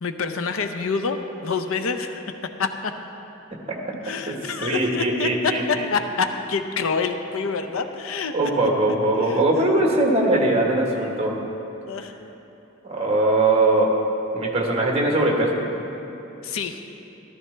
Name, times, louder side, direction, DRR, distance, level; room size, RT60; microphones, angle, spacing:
voice 1, 0.0-2.9 3.9-8.3 9.2-9.6 10.9-11.6 11.9-12.3 13.1-13.2 16.4-16.9, left 5 dB, 80° left, 8 dB, 0.6 m, -27 dB
voice 2, 4.6-5.6 8.3-11.3 12.8-13.9 14.3-15.5, right 2 dB, 30° right, -1 dB, 1.4 m, -20 dB
14.0 x 12.5 x 3.4 m, 3.0 s
head